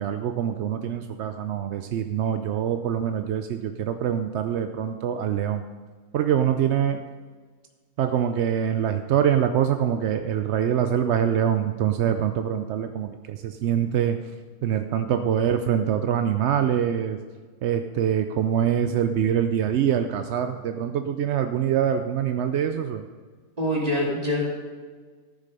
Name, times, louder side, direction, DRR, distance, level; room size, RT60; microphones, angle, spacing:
voice 1, 0.0-5.6 6.1-7.0 8.0-14.2 14.6-17.2 17.6-23.1, right 9 dB, 65° right, 8 dB, 0.7 m, -24 dB
voice 2, 23.6-24.5, left 1 dB, 25° right, -3 dB, 2.8 m, -24 dB
13.5 x 7.4 x 5.3 m, 1.5 s
omnidirectional pair, 1.7 m